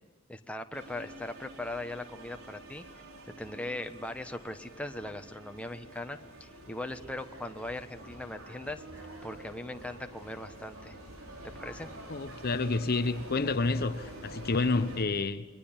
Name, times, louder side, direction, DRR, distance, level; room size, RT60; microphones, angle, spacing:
voice 1, 0.3-2.8 3.3-10.9 11.5-11.9, left 1 dB, 5° left, 1.3 m, -40 dB
sound 1, 0.7-15.0, right 1 dB, 85° right, 4.8 m, -47 dB
voice 2, 12.1-15.5, left 3 dB, 50° left, 0.9 m, -29 dB
29.0 x 22.5 x 9.0 m
head